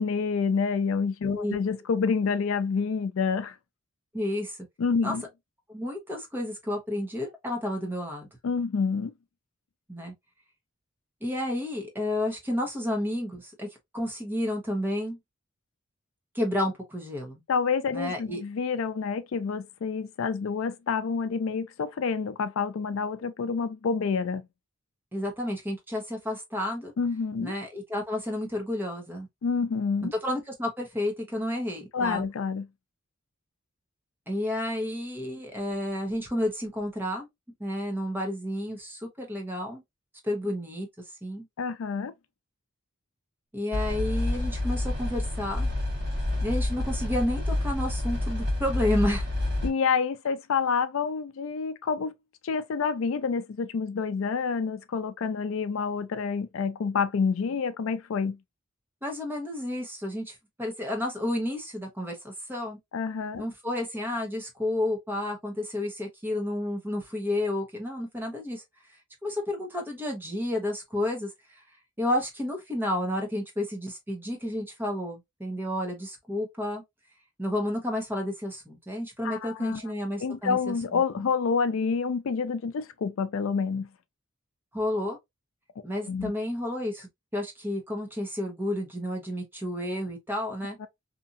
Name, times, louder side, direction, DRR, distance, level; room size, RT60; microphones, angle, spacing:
voice 1, 0.0-3.6 4.8-5.2 8.4-9.1 17.5-24.5 27.0-27.5 29.4-30.1 31.9-32.7 41.6-42.1 49.6-52.1 52.4-58.4 62.9-63.5 79.2-79.8 80.2-83.9 86.1-86.3 90.8-90.9, left 5 dB, 70° left, 0.4 m, -28 dB
voice 2, 4.1-4.6 5.0-5.1 5.7-8.3 9.9-10.1 11.2-13.7 13.9-15.2 16.3-17.4 17.9-18.4 25.1-26.9 27.4-29.3 30.2-32.2 34.3-37.3 37.6-39.8 40.2-40.9 41.2-41.4 43.5-45.7 46.4-49.3 59.0-62.8 63.4-68.6 69.2-71.3 72.0-76.8 77.4-81.0 84.7-85.2 85.8-90.8, left 1 dB, 10° right, 0.9 m, -31 dB
sound 1, 43.7-49.7, left 1 dB, 55° right, 1.4 m, -28 dB
2.8 x 2.6 x 2.5 m
head